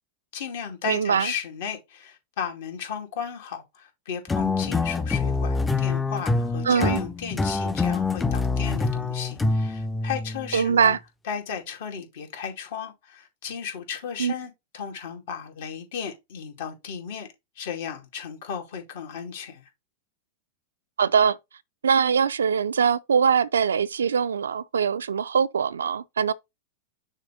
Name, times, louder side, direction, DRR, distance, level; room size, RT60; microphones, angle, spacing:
voice 1, 0.3-11.0 11.2-17.3 17.6-19.7, left 7 dB, 65° left, 2.5 m, -35 dB
voice 2, 0.9-1.3 6.6-7.0 10.5-11.0 14.2-14.3 21.0-21.4 21.8-26.3, right 7 dB, 85° right, 0.4 m, -22 dB
sound 1, 4.3-10.7, left 3 dB, 10° left, 0.5 m, -26 dB
6.5 x 3.2 x 5.0 m
hypercardioid pair, 105°, 0 cm